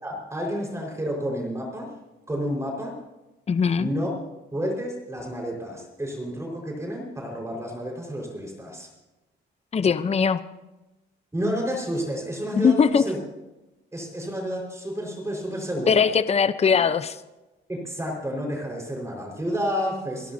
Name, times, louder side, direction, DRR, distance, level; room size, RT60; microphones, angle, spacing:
voice 1, 0.0-1.9 2.3-3.0 3.8-4.1 4.5-8.9 11.3-13.2 13.9-16.1 17.7-20.3, equal, 15° right, 0 dB, 4.8 m, -30 dB
voice 2, 3.5-3.9 9.7-10.4 12.6-13.0 15.9-17.1, left 6 dB, 30° left, 13 dB, 0.7 m, -20 dB
29.0 x 12.5 x 2.8 m, 1.0 s
cardioid pair, 90°, 20 cm